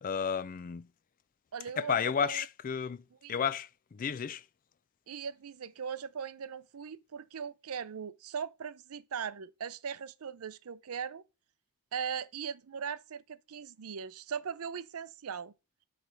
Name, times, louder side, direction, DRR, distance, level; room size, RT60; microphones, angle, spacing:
voice 1, 0.0-0.9 1.8-3.0 3.3-3.7 4.0-4.4, left 7 dB, 35° left, 0.3 m, -32 dB
voice 2, 1.5-2.5 3.2-3.4 5.1-11.2 11.9-15.5, right 7 dB, 70° right, 0.5 m, -39 dB
8.2 x 3.3 x 6.3 m
head